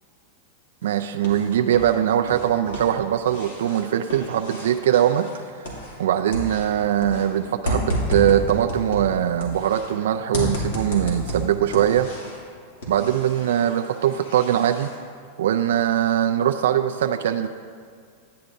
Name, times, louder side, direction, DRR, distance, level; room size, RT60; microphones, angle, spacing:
sound 1, 0.8-1.9 2.2-6.1 6.3-9.9 10.3-12.4 12.8-14.9, equal, 75° left, 2.4 m, -31 dB
voice 1, 0.8-5.7 6.0-12.1 12.9-14.9 15.4-17.5, right 10 dB, 80° right, 7 dB, 0.3 m, -21 dB
11.0 x 9.3 x 2.6 m, 2.1 s
hypercardioid pair, 130°, 0 cm